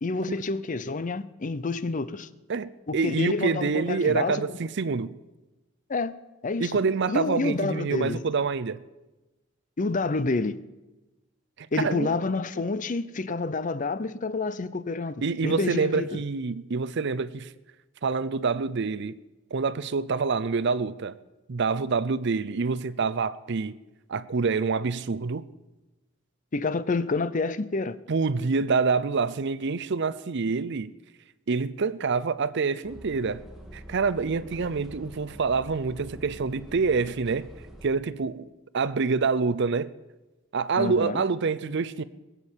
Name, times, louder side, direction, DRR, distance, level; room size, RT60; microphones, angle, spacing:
voice 1, 0.0-2.3 2.9-4.6 5.9-6.1 6.4-6.7 7.1-8.2 9.8-10.6 11.7-16.2 26.5-28.0 40.8-41.2, left 3 dB, 40° left, 0.6 m, -28 dB
voice 2, 2.5-5.1 6.6-8.8 11.6-12.1 15.2-17.5 18.0-19.2 19.5-21.1 21.5-23.8 24.1-25.4 28.1-30.9 31.5-33.4 33.7-37.5 37.8-38.5 38.7-39.9 40.5-42.0, right 4 dB, 60° right, 0.6 m, -26 dB
sound 1, 32.8-37.9, right 1 dB, ahead, 1.9 m, -46 dB
20.5 x 8.3 x 7.3 m
head